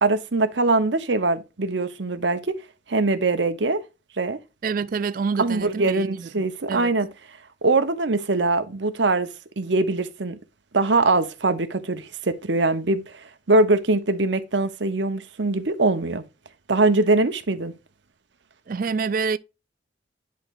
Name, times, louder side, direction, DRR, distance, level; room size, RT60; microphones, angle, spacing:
voice 1, 0.0-2.4 2.9-3.8 4.2-4.4 5.4-7.1 7.6-9.3 9.6-10.4 10.7-13.0 13.5-16.2 16.7-17.7, right 2 dB, 80° right, 1.0 m, -22 dB
voice 2, 4.6-6.4 6.7-6.9 18.7-19.4, right 5 dB, 50° right, 0.4 m, -27 dB
10.5 x 4.5 x 2.6 m
head